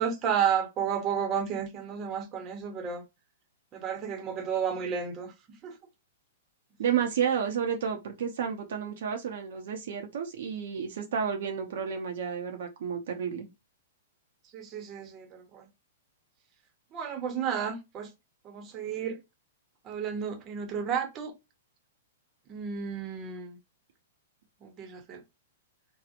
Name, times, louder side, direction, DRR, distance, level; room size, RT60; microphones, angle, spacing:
voice 1, 0.0-3.0 3.7-5.3 5.6-5.7 14.5-15.6 16.9-18.1 18.4-19.2 19.8-21.3 22.5-23.6 24.6-25.2, right 7 dB, 30° right, 0.7 m, -32 dB
voice 2, 6.8-13.5, right 7 dB, 70° right, 0.5 m, -31 dB
2.7 x 2.0 x 2.4 m
hypercardioid pair, 135°, 0 cm